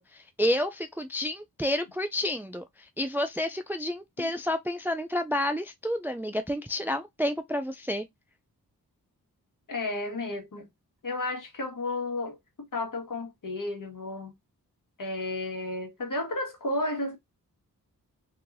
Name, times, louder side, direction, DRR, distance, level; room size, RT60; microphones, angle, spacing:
voice 1, 0.0-2.6 3.0-8.1, left 1 dB, 5° right, 0.4 m, -30 dB
voice 2, 9.7-10.7 11.0-14.3 15.0-17.2, left 2 dB, 55° left, 1.4 m, -33 dB
3.1 x 2.7 x 2.5 m
cardioid pair, 45°, 37 cm